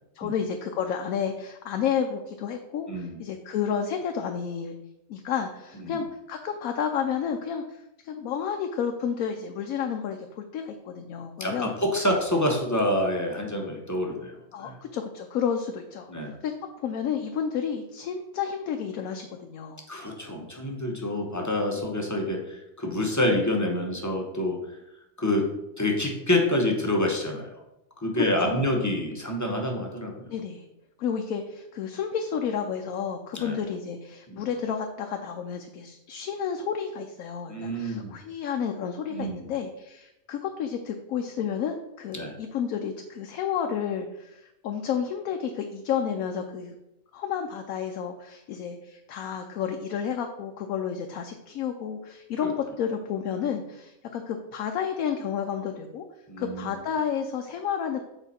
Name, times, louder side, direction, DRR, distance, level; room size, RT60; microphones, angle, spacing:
voice 1, 0.1-4.8 5.1-11.7 14.5-16.5 16.8-19.8 21.8-21.9 28.2-28.6 30.3-30.7 31.0-46.7 47.1-56.0 56.4-58.0, left 7 dB, 85° left, 4 dB, 1.0 m, -31 dB
voice 2, 2.9-3.2 5.8-6.0 11.4-14.3 14.6-14.8 16.1-16.4 19.9-24.6 25.2-25.4 25.8-27.5 28.0-30.1 33.3-33.6 34.3-34.5 37.5-38.2 39.1-39.5 42.1-42.3 52.4-52.5 56.3-56.7, left 1 dB, 15° left, 1 dB, 0.8 m, -27 dB
7.0 x 4.5 x 4.2 m, 0.89 s
omnidirectional pair, 1.4 m